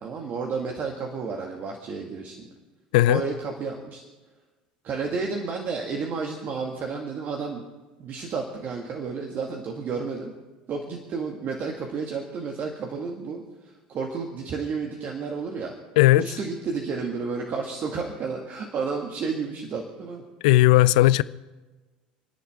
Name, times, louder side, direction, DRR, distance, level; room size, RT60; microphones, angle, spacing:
voice 1, 0.0-2.5 3.1-4.0 4.8-7.6 8.0-10.3 10.7-15.7 16.1-20.2 21.0-21.1, right 5 dB, 45° right, 2.1 m, -31 dB
voice 2, 16.0-16.3 20.4-21.2, left 17 dB, 65° left, 0.4 m, -16 dB
30.0 x 10.5 x 3.7 m
figure-of-eight pair, 70°, 4 cm